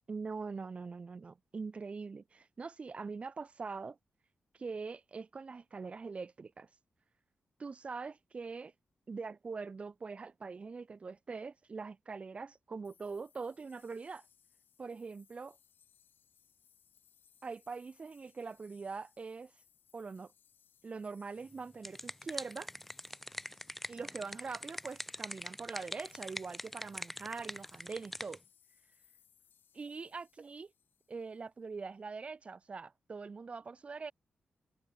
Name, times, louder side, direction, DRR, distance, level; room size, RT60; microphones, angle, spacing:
voice 1, 0.1-4.0 4.5-6.7 7.6-8.7 9.1-14.2 14.8-15.6 17.4-19.5 19.9-20.3 20.8-22.7 23.9-28.4 29.7-30.7 31.1-34.1, right 4 dB, 35° right, 1.0 m, -43 dB
sound 1, 12.8-31.5, left 8 dB, 80° left, 3.6 m, -68 dB
sound 2, 21.5-28.4, left 1 dB, 5° left, 0.5 m, -44 dB
wide cardioid pair, 125°, 3 cm